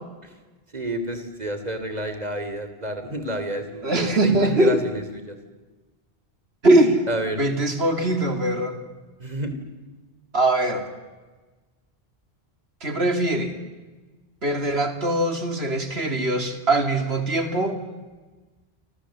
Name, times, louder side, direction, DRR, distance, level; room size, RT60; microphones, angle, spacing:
voice 1, 0.7-5.4 7.1-7.4 9.2-9.5, right 1 dB, 40° right, 8 dB, 3.2 m, -30 dB
voice 2, 3.8-4.8 6.6-7.0 7.4-8.8 10.3-10.9 12.8-13.5 14.4-17.8, right 1 dB, 80° right, 6 dB, 3.2 m, -21 dB
29.5 x 26.0 x 7.6 m, 1.3 s
omnidirectional pair, 1.0 m